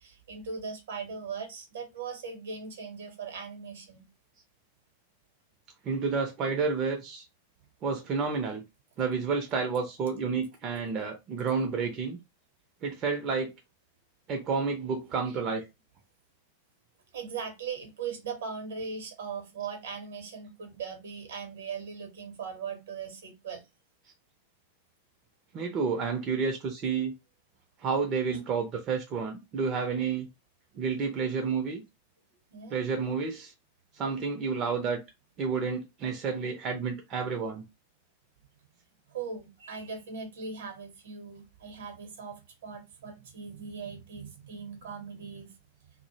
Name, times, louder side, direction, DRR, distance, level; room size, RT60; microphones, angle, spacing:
voice 1, 0.0-4.1 17.1-23.6 32.5-32.8 39.1-45.5, right 5 dB, 60° right, 0.8 m, -39 dB
voice 2, 5.8-7.3 7.8-8.6 9.0-12.2 12.8-13.5 14.3-15.7 25.5-27.1 27.8-30.3 30.7-31.8 32.7-33.5 33.9-35.0 35.4-37.6, right 5 dB, 35° right, 0.5 m, -30 dB
2.1 x 2.0 x 3.0 m
figure-of-eight pair, 90°, 0 cm